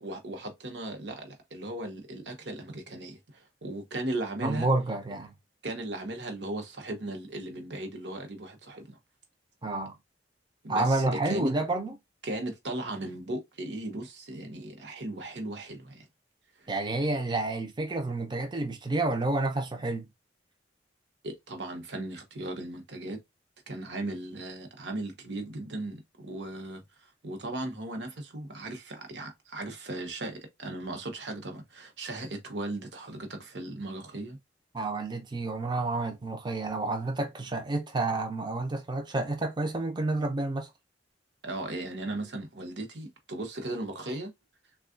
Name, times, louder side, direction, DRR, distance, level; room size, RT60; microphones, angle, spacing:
voice 1, 0.0-4.7 5.6-9.0 10.6-11.0 11.3-11.5 12.2-16.1 16.6-16.7 21.2-23.2 23.7-34.4 41.4-44.3, right 2 dB, 65° right, 0.9 m, -37 dB
voice 2, 4.4-5.3 9.6-9.9 10.7-11.9 16.7-20.1 34.7-40.7, right 2 dB, 25° right, 0.5 m, -29 dB
3.5 x 2.3 x 2.4 m
head